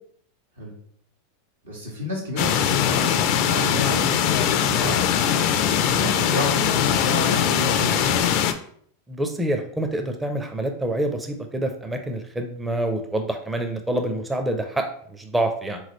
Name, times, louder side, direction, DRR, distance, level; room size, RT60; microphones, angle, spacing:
voice 1, 1.6-5.1 5.6-8.2, left 2 dB, 85° right, -3 dB, 1.4 m, -30 dB
sound 1, 2.4-8.5, left 9 dB, 50° left, 0.4 m, -21 dB
voice 2, 9.1-15.8, right 1 dB, 10° right, 4 dB, 0.5 m, -27 dB
3.8 x 3.1 x 3.0 m, 0.62 s
hypercardioid pair, 90°, 0 cm